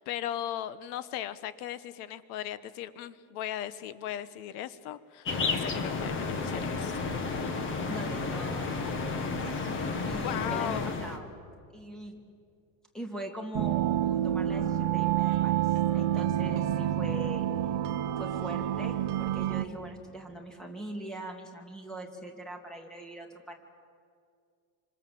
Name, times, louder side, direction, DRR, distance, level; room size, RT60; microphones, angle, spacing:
voice 1, 0.0-7.1 10.2-11.0, left 11 dB, 80° left, 14 dB, 1.3 m, -37 dB
sound 1, 5.2-11.2, left 4 dB, 25° left, 1.8 m, -32 dB
voice 2, 7.9-9.2 9.4-11.3 11.7-12.2 12.9-17.5 18.2-23.5, right 1 dB, ahead, 2 dB, 2.4 m, -41 dB
sound 2, 13.5-19.7, right 12 dB, 40° right, 1.1 m, -28 dB
28.0 x 25.5 x 7.7 m, 2.3 s
cardioid pair, 175°, 44 cm